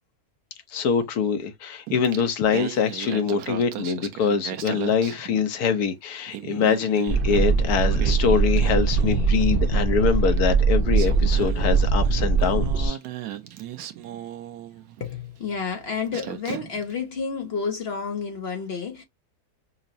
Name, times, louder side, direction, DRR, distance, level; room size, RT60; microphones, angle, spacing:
voice 1, 0.7-13.0, left 6 dB, 75° left, 1.3 m, -24 dB
Singing, 1.9-5.8 6.1-9.4 10.4-10.5 10.9-15.1 15.7-15.8 16.1-16.9, right 11 dB, 85° right, 1.2 m, -37 dB
sound 1, 7.1-12.9, right 4 dB, 65° right, 0.5 m, -21 dB
voice 2, 15.0-19.0, left 5 dB, 55° left, 0.8 m, -30 dB
5.5 x 2.0 x 2.6 m
omnidirectional pair, 1.7 m